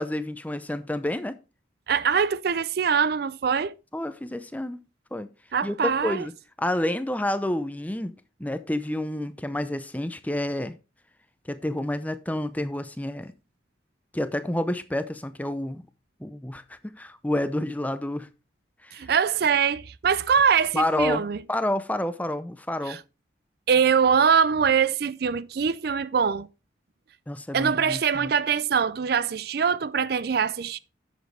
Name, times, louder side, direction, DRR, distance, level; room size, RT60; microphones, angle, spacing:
voice 1, 0.0-1.4 3.9-4.8 5.1-5.3 5.6-6.3 6.6-8.1 8.4-10.7 11.5-13.3 14.1-15.8 16.2-18.3 18.8-19.1 20.7-23.0 27.3-28.3, left 1 dB, 10° left, 0.6 m, -29 dB
voice 2, 1.9-3.7 5.5-6.3 18.9-21.4 22.9-23.0 23.7-26.5 27.5-30.8, right 6 dB, 55° right, 0.4 m, -23 dB
10.5 x 7.2 x 3.3 m
head